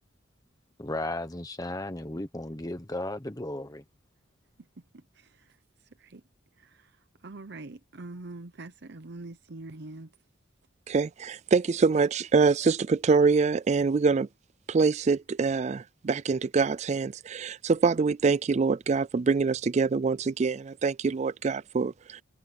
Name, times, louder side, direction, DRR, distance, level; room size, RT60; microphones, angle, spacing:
voice 1, 0.8-3.8, left 1 dB, 20° left, 1.1 m, -35 dB
voice 2, 4.6-6.2 6.5-10.1, right 2 dB, 60° right, 0.8 m, -45 dB
voice 3, 10.9-14.3 14.7-22.2, right 4 dB, 35° right, 0.3 m, -25 dB
head